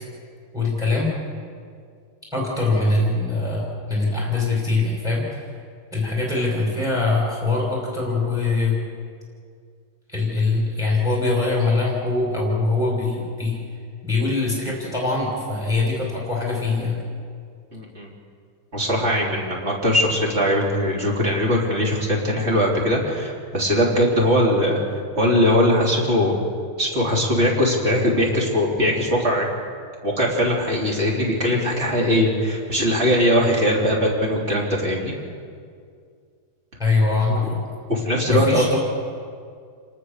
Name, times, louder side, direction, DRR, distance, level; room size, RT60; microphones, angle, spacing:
voice 1, 0.5-1.1 2.3-5.2 5.9-8.8 10.1-13.6 14.0-17.0 36.8-37.6 38.3-38.8, left 3 dB, ahead, -3 dB, 5.4 m, -22 dB
voice 2, 17.7-18.1 18.7-26.4 26.8-29.5 30.0-35.1 37.9-38.7, equal, 30° right, -3 dB, 4.3 m, -20 dB
28.5 x 19.5 x 6.8 m, 2.2 s
omnidirectional pair, 2.3 m